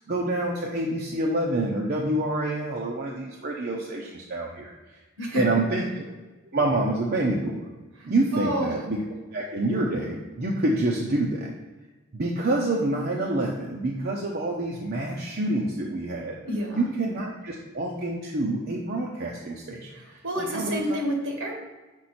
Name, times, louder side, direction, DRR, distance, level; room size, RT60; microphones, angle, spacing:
voice 1, 0.1-5.0 5.4-5.8 6.4-7.7 8.0-9.0 9.3-11.5 12.1-16.4 16.7-20.8, right 2 dB, 50° right, -1 dB, 0.8 m, -27 dB
voice 2, 5.2-5.6 8.0-8.7 16.4-16.9 19.9-21.5, equal, 70° right, 0 dB, 1.7 m, -29 dB
6.2 x 5.2 x 4.3 m, 1.2 s
head